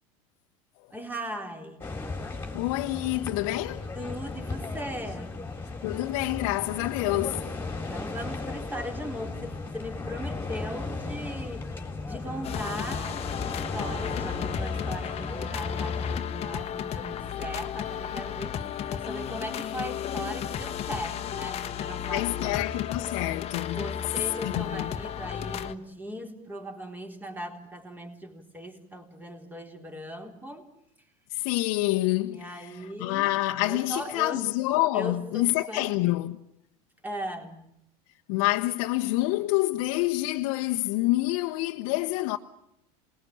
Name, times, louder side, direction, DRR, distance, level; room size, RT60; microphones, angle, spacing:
voice 1, 0.9-1.9 3.9-5.4 7.7-11.7 12.1-22.6 23.7-30.7 32.3-33.3 33.6-34.4 34.9-36.0 37.0-37.7, equal, 10° right, 4.0 m, -38 dB
sound 1, 1.8-16.2, left 3 dB, 15° left, 3.8 m, -36 dB
voice 2, 2.5-3.9 5.8-7.5 22.1-23.9 24.5-24.9 31.3-36.4 38.3-42.4, left 18 dB, 65° left, 1.1 m, -27 dB
sound 2, 12.4-25.7, left 9 dB, 35° left, 1.4 m, -33 dB
27.5 x 21.0 x 8.6 m
supercardioid pair, 115°, 18 cm